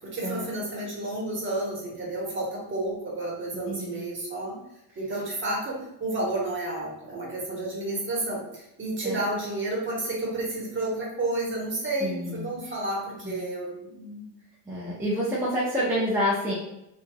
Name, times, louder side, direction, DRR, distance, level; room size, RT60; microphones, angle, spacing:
voice 1, 0.0-4.6 5.0-14.3, right 2 dB, 30° right, -4 dB, 1.2 m, -31 dB
voice 2, 3.7-4.0 9.0-9.2 12.0-12.5 13.2-13.4 14.7-16.5, equal, 5° right, -8 dB, 0.7 m, -28 dB
3.2 x 2.6 x 2.2 m, 0.86 s
supercardioid pair, 100°, 43 cm